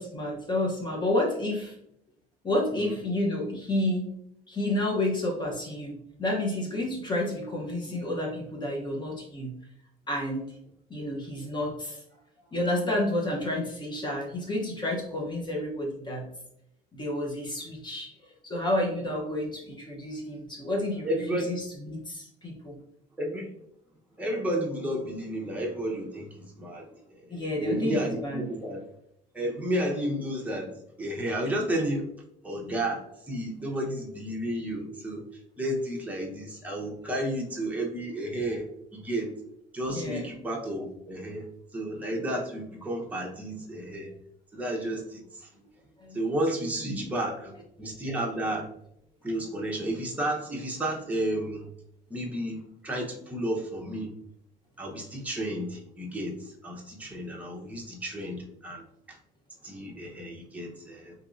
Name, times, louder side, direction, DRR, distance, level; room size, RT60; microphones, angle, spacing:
voice 1, 0.0-1.8 2.4-4.1 4.5-5.9 6.2-9.5 10.1-10.5 10.9-12.0 12.5-16.2 17.0-22.7 26.8-26.9 27.3-28.4 39.9-40.2 46.0-46.2 46.8-47.1 48.1-48.2, left 1 dB, 25° left, -2 dB, 0.9 m, -30 dB
voice 2, 21.0-21.5 23.2-23.5 24.2-28.8 29.3-32.1 32.4-35.2 35.6-38.7 38.9-39.3 39.7-41.5 41.7-44.1 44.5-45.5 46.1-47.5 47.8-48.7 49.2-51.7 52.1-54.1 54.8-58.8 59.1-59.2 59.6-61.1, right 1 dB, 10° right, -1 dB, 0.8 m, -32 dB
3.6 x 2.8 x 2.5 m, 0.74 s
cardioid pair, 110°, 17 cm